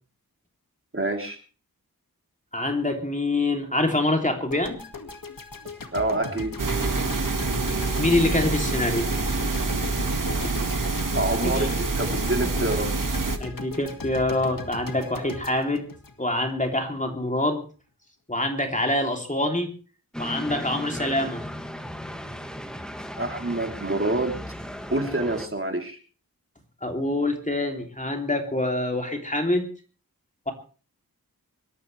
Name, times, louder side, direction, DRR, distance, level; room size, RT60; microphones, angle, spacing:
voice 1, 0.9-1.4 5.9-6.5 11.1-12.9 23.2-24.4 24.9-26.0, right 2 dB, 35° right, 3 dB, 3.5 m, -27 dB
voice 2, 2.5-4.8 8.0-9.6 10.4-10.5 11.4-11.7 13.4-15.9 16.2-17.6 18.3-19.7 20.2-21.4 26.8-29.7, left 1 dB, 20° left, 3 dB, 3.2 m, -25 dB
sound 1, 4.5-16.7, left 3 dB, 65° left, 2.2 m, -38 dB
sound 2, 6.6-13.4, right 3 dB, 60° right, 2.0 m, -26 dB
sound 3, 20.1-25.5, equal, ahead, 2.1 m, -36 dB
25.5 x 13.5 x 3.4 m, 0.38 s
wide cardioid pair, 55°, 36 cm